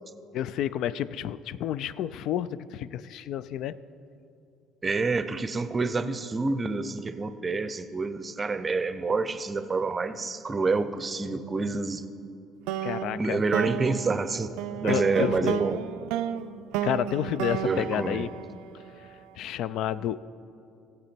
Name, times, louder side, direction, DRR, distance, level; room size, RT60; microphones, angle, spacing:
voice 1, 0.3-3.8 12.8-13.4 14.8-15.6 16.8-18.3 19.4-20.2, left 11 dB, 70° left, 17 dB, 0.3 m, -30 dB
voice 2, 4.8-12.0 13.1-14.5 14.8-15.8 17.6-18.3, right 3 dB, 25° right, 12 dB, 0.6 m, -28 dB
sound 1, 12.7-19.1, right 11 dB, 85° right, 0.3 m, -32 dB
15.0 x 8.1 x 4.4 m, 2.7 s
supercardioid pair, 90°, 0 cm